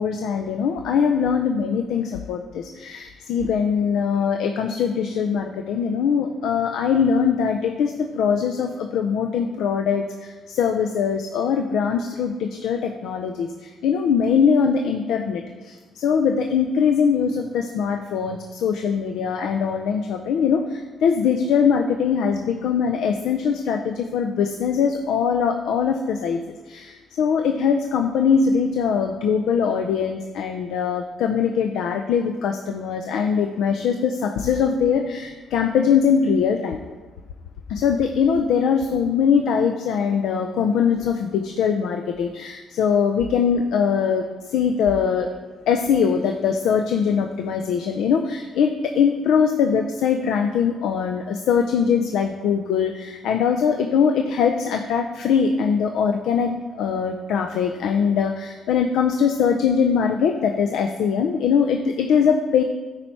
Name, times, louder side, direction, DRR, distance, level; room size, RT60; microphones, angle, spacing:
voice 1, 0.0-26.4 26.7-36.8 37.7-45.3 45.7-62.6, left 6 dB, 85° left, 5 dB, 0.5 m, -22 dB
9.5 x 4.4 x 4.5 m, 1.3 s
cardioid pair, 90°, 0 cm